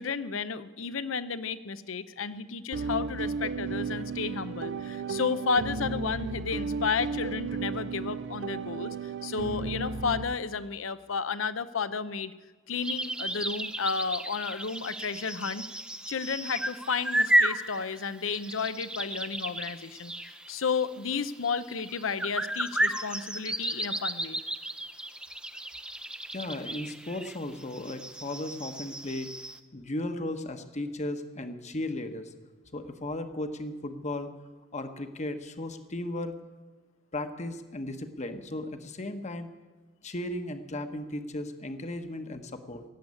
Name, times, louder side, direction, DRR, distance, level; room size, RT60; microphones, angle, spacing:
voice 1, 0.0-12.3 12.7-15.6 16.1-24.4, left 5 dB, 90° left, 14 dB, 0.7 m, -32 dB
sound 1, 2.7-10.3, right 4 dB, 65° right, 0.6 m, -34 dB
sound 2, 12.8-29.6, right 1 dB, 5° right, 0.6 m, -33 dB
voice 2, 26.3-29.3 29.7-32.3 32.7-34.3 34.7-36.4 37.1-39.5 40.0-42.8, left 1 dB, 35° left, 8 dB, 1.1 m, -36 dB
17.0 x 8.0 x 9.7 m, 1.3 s
head